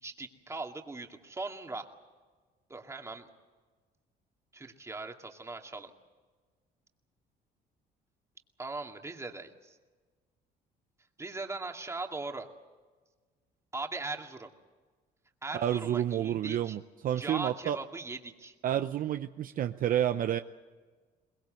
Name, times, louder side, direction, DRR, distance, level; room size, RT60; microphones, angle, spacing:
voice 1, 0.0-1.9 2.7-3.3 4.5-5.9 8.6-9.8 11.2-12.5 13.7-14.5 15.4-16.8 17.2-18.5, right 3 dB, 15° right, 3 dB, 2.2 m, -39 dB
voice 2, 15.5-17.8 18.6-20.4, right 11 dB, 55° right, 9 dB, 0.7 m, -30 dB
22.5 x 21.0 x 7.8 m, 1.4 s
cardioid pair, 110°, 17 cm